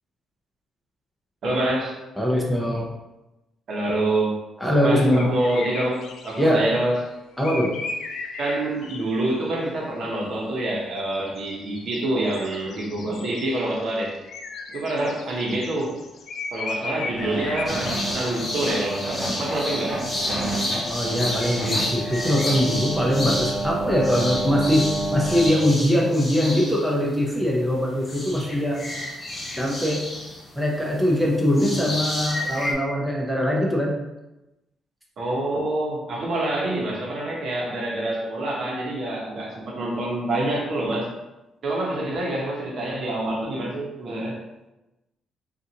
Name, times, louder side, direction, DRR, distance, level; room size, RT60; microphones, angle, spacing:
voice 1, 1.4-1.9 3.7-4.4 4.8-7.0 8.4-14.2 14.7-16.0 16.5-20.0 35.2-41.1 41.6-44.4, right 1 dB, 60° right, -2 dB, 0.9 m, -26 dB
voice 2, 2.2-2.9 4.6-5.4 6.4-6.6 7.4-7.7 20.9-28.9 29.6-30.1 30.6-34.0, equal, ahead, -3 dB, 0.7 m, -22 dB
sound 1, 5.1-6.9 7.4-9.2 11.3-18.2, left 3 dB, 70° left, 0.4 m, -36 dB
sound 2, 17.1-25.5, right 2 dB, 40° right, 1.3 m, -30 dB
sound 3, 17.7-27.8 28.0-32.7, left 1 dB, 30° left, 0.8 m, -31 dB
4.0 x 2.5 x 2.8 m, 0.99 s
cardioid pair, 90°, 0 cm